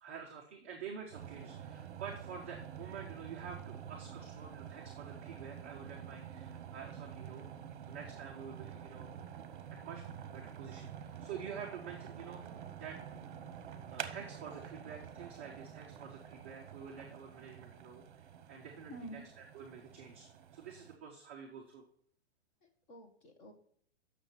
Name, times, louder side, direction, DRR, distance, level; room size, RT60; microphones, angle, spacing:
voice 1, 0.0-7.5 7.9-9.3 9.7-12.4 12.8-13.0 13.9-21.9, right 6 dB, 15° right, -3 dB, 0.3 m, -48 dB
sound 1, 1.1-21.0, right 8 dB, 50° right, 1.0 m, -48 dB
voice 2, 18.9-19.2 22.6-23.5, right 1 dB, 25° left, 4 dB, 1.3 m, -49 dB
8.0 x 6.4 x 4.3 m, 0.62 s
hypercardioid pair, 165°, 33 cm